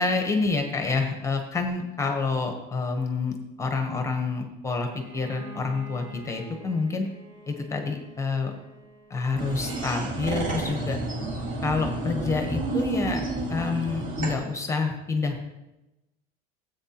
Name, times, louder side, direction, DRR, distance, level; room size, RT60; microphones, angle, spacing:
voice 1, 0.0-4.9 5.1-7.1 7.5-8.5 9.1-11.0 11.6-13.2 13.5-15.4, left 4 dB, 15° left, 5 dB, 0.9 m, -28 dB
Bowed string instrument, 4.8-9.5, left 2 dB, 25° right, 3.9 m, -47 dB
sound 1, 9.4-14.3, right 2 dB, 45° right, 2.0 m, -30 dB
14.0 x 8.0 x 2.9 m, 0.99 s
cardioid pair, 150°, 19 cm